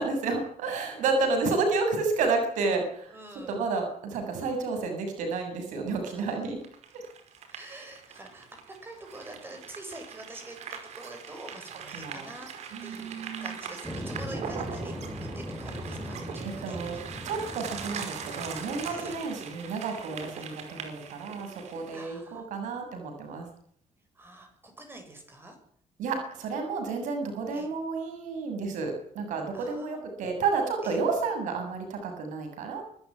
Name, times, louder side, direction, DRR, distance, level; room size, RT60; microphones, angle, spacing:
voice 1, 0.0-3.1 3.5-6.6 7.7-7.9 11.9-12.3 12.7-13.6 16.4-17.0 17.2-23.5 26.0-32.8, right 4 dB, 90° right, 4 dB, 7.2 m, -31 dB
voice 2, 3.1-3.7 6.1-6.5 7.5-12.5 12.8-13.1 13.4-16.2 16.7-16.8 18.8-19.2 20.3-20.5 21.9-22.5 24.2-25.6 27.5-27.7 29.5-30.1 30.8-31.0, right 2 dB, 15° right, 5 dB, 7.5 m, -46 dB
sound 1, 6.6-22.1, right 7 dB, 65° right, 5.3 m, -41 dB
sound 2, 13.8-19.2, equal, ahead, 2.9 m, -39 dB
25.0 x 14.0 x 10.0 m, 0.65 s
cardioid pair, 155°, 13 cm